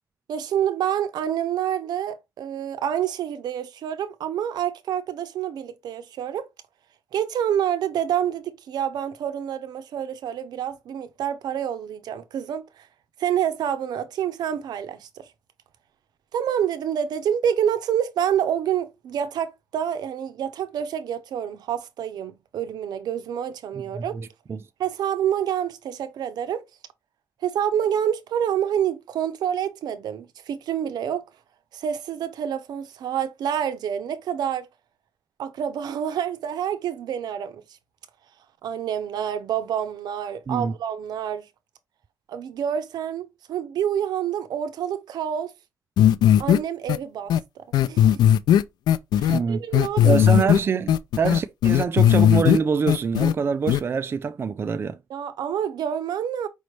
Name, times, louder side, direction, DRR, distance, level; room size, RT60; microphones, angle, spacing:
voice 1, 0.3-6.5 7.1-12.9 13.2-15.3 16.3-24.2 24.8-26.6 27.4-31.2 31.7-34.7 35.4-37.6 38.6-41.5 42.3-45.5 46.4-48.2 49.2-50.2 55.1-56.5, right 9 dB, 80° right, 0.7 m, -27 dB
voice 2, 23.8-24.6 40.5-40.7 49.3-49.6 50.0-55.0, right 5 dB, 35° right, 0.3 m, -25 dB
sound 1, 46.0-46.6 46.9-47.0 47.3-47.4 47.7-49.4 49.7-50.6 50.9-52.6 52.9-53.3 53.7-53.8, left 10 dB, 85° left, 0.3 m, -17 dB
5.1 x 3.2 x 3.1 m
cardioid pair, 125°, 7 cm